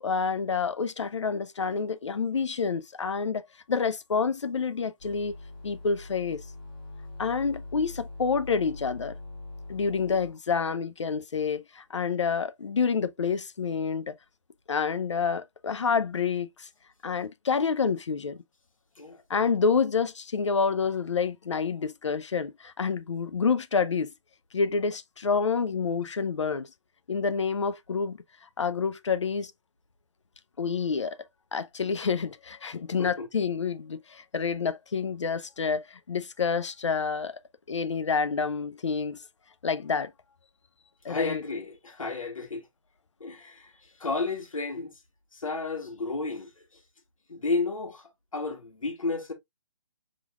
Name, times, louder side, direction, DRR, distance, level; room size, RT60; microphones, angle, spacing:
voice 1, 0.0-3.4 3.7-5.3 5.6-6.4 7.2-9.1 9.7-14.1 14.7-16.7 17.0-18.4 19.3-24.1 24.5-26.7 27.1-28.2 28.6-29.5 30.6-31.2 31.5-37.4 37.7-39.2 39.6-40.1 41.0-41.4, left 5 dB, 60° left, 0.6 m, -28 dB
sound 1, 5.0-10.3, left 2 dB, 15° left, 1.5 m, -43 dB
voice 2, 41.1-42.6 43.2-44.9 45.3-46.8 47.3-49.3, left 3 dB, 90° left, 1.8 m, -32 dB
4.8 x 3.8 x 2.3 m
hypercardioid pair, 175°, 17 cm